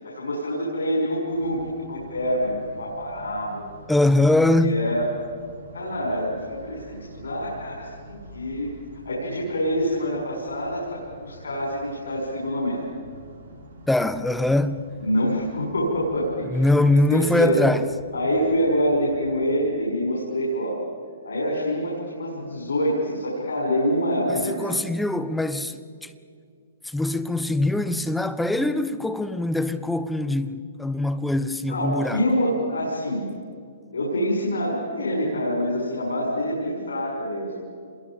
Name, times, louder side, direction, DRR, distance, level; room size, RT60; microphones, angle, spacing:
voice 1, 0.0-3.7 4.6-5.1 5.7-8.7 9.0-12.8 15.0-16.7 17.1-17.6 18.1-20.8 21.2-24.8 31.7-33.3 33.9-37.6, equal, 85° left, 6.1 m, -26 dB
sound 1, 1.3-19.5, right 1 dB, 90° right, 4.1 m, -46 dB
voice 2, 3.9-4.8 13.9-14.8 16.5-17.9 24.3-26.1 26.8-32.2, left 2 dB, 5° left, 1.0 m, -22 dB
27.0 x 22.0 x 5.2 m
hypercardioid pair, 130°, 0 cm